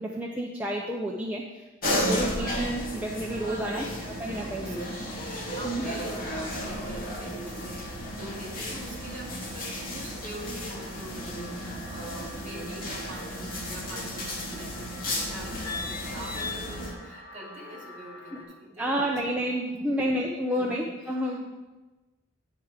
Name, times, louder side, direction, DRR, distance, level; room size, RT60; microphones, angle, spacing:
voice 1, 0.0-4.8 5.6-5.8 18.3-18.4 18.8-21.4, equal, 10° right, -2 dB, 0.5 m, -30 dB
sound 1, 1.8-16.9, left 1 dB, 45° left, 1.3 m, -34 dB
sound 2, 2.8-18.4, left 1 dB, 65° left, 1.7 m, -49 dB
voice 2, 3.6-3.9 4.4-4.8 5.2-20.1 20.5-21.4, right 1 dB, 35° right, -4 dB, 2.5 m, -44 dB
9.3 x 4.7 x 4.8 m, 1.2 s
head